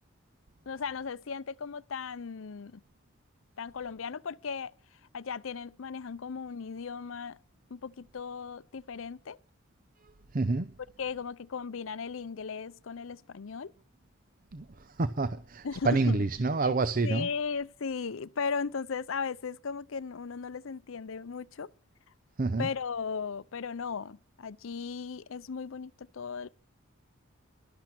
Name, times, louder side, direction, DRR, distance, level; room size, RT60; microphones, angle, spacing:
voice 1, 0.7-2.8 3.6-4.7 5.1-7.4 7.7-9.4 11.0-13.7 15.6-16.2 16.6-16.7 17.0-21.7 22.6-26.5, left 5 dB, 70° left, 0.6 m, -36 dB
voice 2, 10.3-10.7 14.5-14.6 15.0-17.3 22.4-22.7, right 3 dB, 40° right, 0.6 m, -28 dB
12.0 x 12.0 x 5.8 m
head